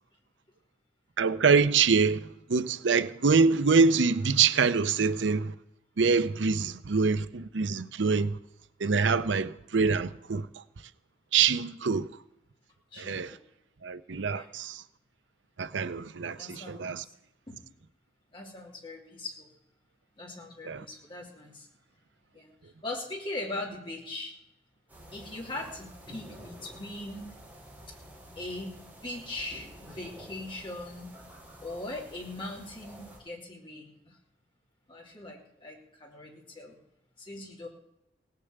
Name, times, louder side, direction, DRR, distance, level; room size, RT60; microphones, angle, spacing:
voice 1, 1.2-2.2 2.5-5.5 6.0-8.4 8.8-10.5 11.3-12.1 13.0-13.3 13.8-14.8 15.6-17.0 20.7-20.8, right 5 dB, 75° right, 0.6 m, -25 dB
voice 2, 12.9-13.4 14.3-14.5 16.4-17.1 17.5-17.6 18.3-19.5 20.2-21.7 22.3-22.5 22.8-24.3 25.1-27.3 27.9-28.0 28.4-31.1 31.6-34.2 34.9-36.8 37.2-37.7, left 2 dB, 25° left, 2.8 m, -40 dB
sound 1, 24.9-33.2, equal, 10° right, 4.9 m, -50 dB
17.5 x 6.8 x 8.0 m
head